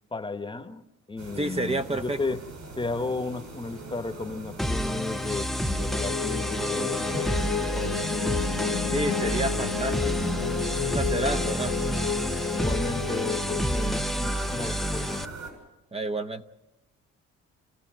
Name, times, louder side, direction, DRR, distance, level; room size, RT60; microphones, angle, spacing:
voice 1, 0.1-2.4 2.8-8.3 12.5-15.3, left 3 dB, 15° left, 8 dB, 1.4 m, -34 dB
sound 1, 1.2-15.5, right 3 dB, 70° right, 7.1 m, -42 dB
voice 2, 1.4-2.2 8.9-10.5 10.8-11.9 15.9-16.5, right 2 dB, 20° right, 8 dB, 1.0 m, -30 dB
sound 2, 4.6-15.2, equal, ahead, 0.7 m, -29 dB
sound 3, 5.8-14.2, left 10 dB, 70° left, 1.2 m, -32 dB
28.5 x 15.5 x 7.6 m, 0.99 s
cardioid pair, 90°, 30 cm